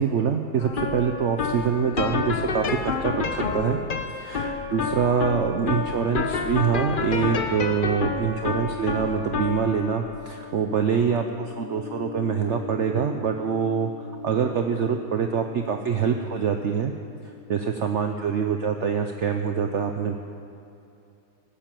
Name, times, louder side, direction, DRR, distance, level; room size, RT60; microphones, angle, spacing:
voice 1, 0.0-3.8 4.1-16.9 17.5-20.2, right 6 dB, 60° right, 5 dB, 0.8 m, -25 dB
sound 1, 0.6-17.8, left 5 dB, 50° left, 0.6 m, -31 dB
18.5 x 10.0 x 7.5 m, 2.8 s
omnidirectional pair, 2.1 m